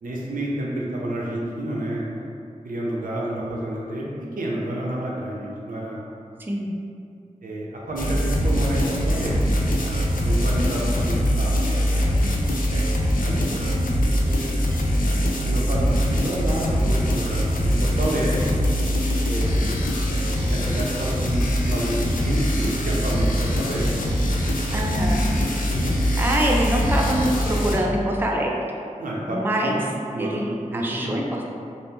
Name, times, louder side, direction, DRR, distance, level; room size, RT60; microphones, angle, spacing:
voice 1, 0.0-2.3 2.6-4.1 4.4-6.0 7.4-9.4 9.8-11.8 13.2-13.9 14.2-14.8 15.4-18.5 19.2-19.7 20.4-24.1 25.7-25.9 29.0-29.8 30.1-30.4 30.7-31.2, right 1 dB, 90° right, -4 dB, 0.5 m, -29 dB
voice 2, 6.4-6.8 24.7-25.3 26.2-28.5 29.2-29.8 30.2-31.4, right 1 dB, 15° right, -1 dB, 0.3 m, -24 dB
sound 1, 8.0-27.8, equal, 80° left, 0.4 m, -22 dB
2.7 x 2.0 x 3.4 m, 2.5 s
wide cardioid pair, 75°, 14 cm